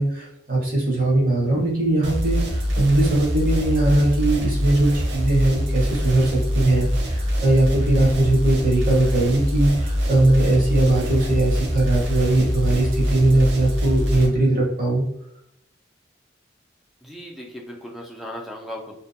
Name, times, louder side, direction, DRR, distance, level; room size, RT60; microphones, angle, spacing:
voice 1, 0.0-15.0, right 2 dB, 50° right, -3 dB, 0.8 m, -20 dB
sound 1, 2.0-14.3, equal, 80° right, 0.5 m, -24 dB
voice 2, 17.0-19.0, left 1 dB, ahead, -1 dB, 0.3 m, -37 dB
2.5 x 2.2 x 2.5 m, 0.81 s
head